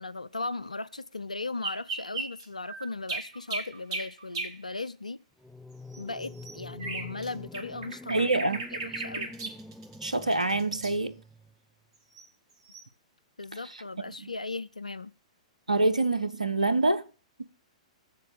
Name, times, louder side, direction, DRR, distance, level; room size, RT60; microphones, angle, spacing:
voice 1, 0.0-5.2 6.0-8.3 8.7-9.3 13.4-15.1, left 3 dB, 85° left, 0.5 m, -37 dB
sound 1, 1.6-4.5 5.9-7.3 7.5-10.9 12.2-12.3 12.7-12.8, right 3 dB, 50° right, 2.1 m, -36 dB
sound 2, 5.4-11.5, left 2 dB, ahead, 0.7 m, -46 dB
voice 2, 8.1-8.6 10.0-11.2 14.2-14.3 15.7-17.1 17.4-17.5, right 2 dB, 85° right, 0.9 m, -26 dB
7.5 x 7.5 x 7.4 m
figure-of-eight pair, 110°, 4 cm